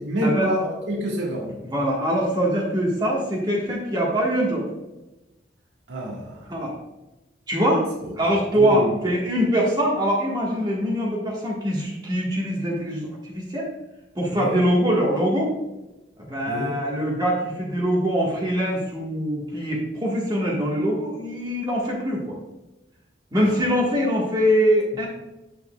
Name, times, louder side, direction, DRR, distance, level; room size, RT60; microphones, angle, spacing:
voice 1, 0.0-1.6 5.9-6.5 8.6-9.0 14.3-14.6 16.5-16.7 23.4-23.7, equal, 85° right, -3 dB, 1.6 m, -27 dB
voice 2, 1.7-4.7 6.5-6.8 7.5-7.8 8.1-13.7 14.1-15.5 16.3-22.4 23.3-25.1, equal, 25° right, -4 dB, 1.4 m, -23 dB
8.3 x 6.6 x 2.3 m, 1.0 s
head